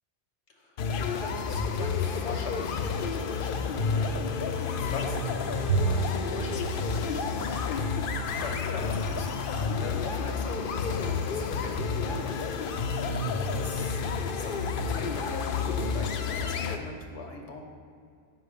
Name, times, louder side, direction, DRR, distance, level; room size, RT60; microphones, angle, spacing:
voice 1, 0.5-14.0 14.3-17.6, left 3 dB, 80° left, 2 dB, 1.3 m, -42 dB
sound 1, 0.8-16.8, left 5 dB, 60° left, 0.6 m, -30 dB
Bowed string instrument, 5.7-8.2, right 4 dB, 80° right, 0.9 m, -31 dB
7.8 x 5.6 x 5.0 m, 2.2 s
omnidirectional pair, 1.2 m